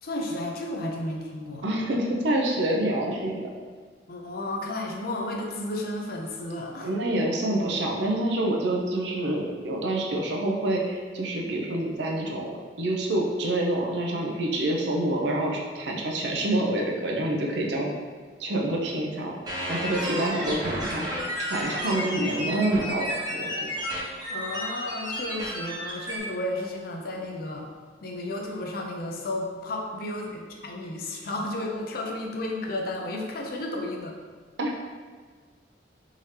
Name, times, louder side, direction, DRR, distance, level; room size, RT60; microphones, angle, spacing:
voice 1, 0.0-1.6 4.1-6.9 20.0-20.3 21.6-21.8 22.2-22.3 24.3-27.7 28.0-34.2, left 1 dB, 55° left, 1 dB, 0.5 m, -33 dB
voice 2, 1.6-3.5 6.8-17.9 18.4-19.4 19.7-23.7 34.6-34.7, right 1 dB, 75° right, 0 dB, 0.6 m, -27 dB
sound 1, 19.5-26.2, equal, 25° right, 0.8 m, -32 dB
3.6 x 2.8 x 3.2 m, 1.5 s
head